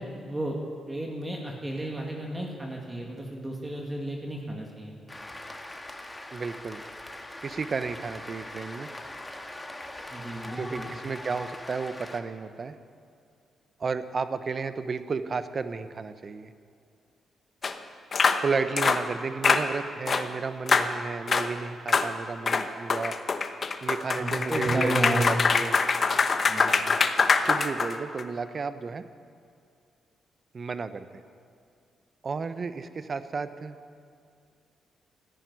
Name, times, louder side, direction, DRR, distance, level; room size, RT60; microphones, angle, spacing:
voice 1, 0.2-0.6 0.9-5.0 10.1-10.9 24.1-25.3 26.5-26.8, right 1 dB, 20° right, 0 dB, 2.1 m, -32 dB
Cheering / Applause, 5.1-12.2, left 1 dB, 15° left, 1.6 m, -41 dB
voice 2, 6.3-6.8 7.4-8.9 10.6-12.7 13.8-16.5 18.4-23.2 23.8-25.8 27.5-29.0 30.5-31.1 32.2-33.8, right 4 dB, 45° right, 11 dB, 0.9 m, -32 dB
sound 1, 17.6-17.7 18.1-18.4 18.8-19.0 19.4-19.7 20.1-20.3 20.7-20.9 21.3-21.5 21.9-22.1 22.5-28.2, left 4 dB, 50° left, 1.0 m, -24 dB
14.0 x 10.5 x 9.6 m, 2.3 s
cardioid pair, 70°, 0 cm